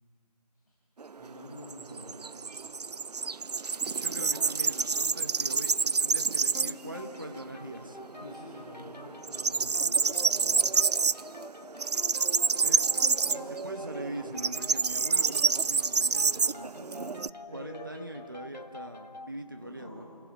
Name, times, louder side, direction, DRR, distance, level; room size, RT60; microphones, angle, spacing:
sound 1, 1.0-6.9 7.3-7.4 7.8-8.6 8.8-17.3, right 5 dB, 70° right, 0.4 m, -28 dB
voice 1, 1.2-2.3 8.1-10.7 16.7-18.1 19.5-20.0, equal, 10° left, -14 dB, 2.9 m, -47 dB
voice 2, 3.8-8.0 12.6-12.8 13.3-16.7 17.5-20.0, right 1 dB, 30° right, 6 dB, 1.1 m, -42 dB
sound 2, 6.5-19.4, left 2 dB, 85° left, 1.3 m, -47 dB
30.0 x 15.0 x 6.1 m, 2.5 s
figure-of-eight pair, 180°, 21 cm